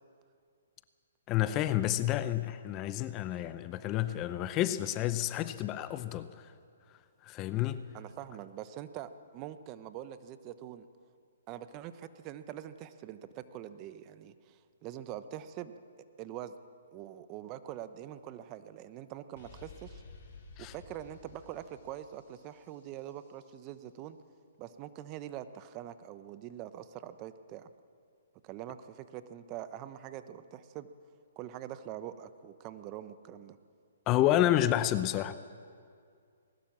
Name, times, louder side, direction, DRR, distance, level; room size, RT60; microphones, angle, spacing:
voice 1, 1.3-6.3 7.2-7.8 20.6-20.7 34.1-35.4, left 13 dB, 25° left, 0.7 m, -29 dB
voice 2, 7.9-10.9 11.5-15.7 16.2-16.5 16.9-20.0 20.6-24.2 24.6-27.7 28.4-30.9 31.4-33.6, right 11 dB, 30° right, 0.9 m, -44 dB
sound 1, 19.4-23.1, left 4 dB, 50° left, 5.3 m, -53 dB
20.0 x 19.0 x 7.4 m
hypercardioid pair, 145°, 0 cm